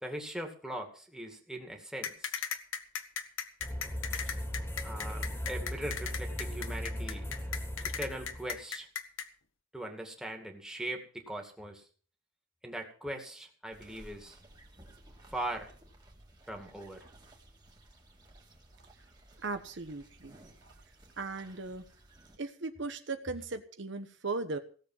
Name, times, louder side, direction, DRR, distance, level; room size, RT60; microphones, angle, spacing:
voice 1, 0.0-2.4 4.8-7.3 8.0-8.9 9.7-11.9 12.6-14.4 15.3-15.7 16.5-17.0, right 1 dB, 5° right, 2 dB, 2.3 m, -40 dB
sound 1, 2.0-9.3, left 7 dB, 80° left, 1.3 m, -36 dB
sound 2, 3.6-8.6, equal, 10° left, 2.3 m, -38 dB
sound 3, 13.7-22.4, right 1 dB, 20° right, 2.4 m, -57 dB
voice 2, 19.4-20.4 21.2-21.8 22.4-24.6, right 3 dB, 65° right, 9 dB, 1.1 m, -37 dB
17.0 x 7.3 x 7.4 m, 0.42 s
head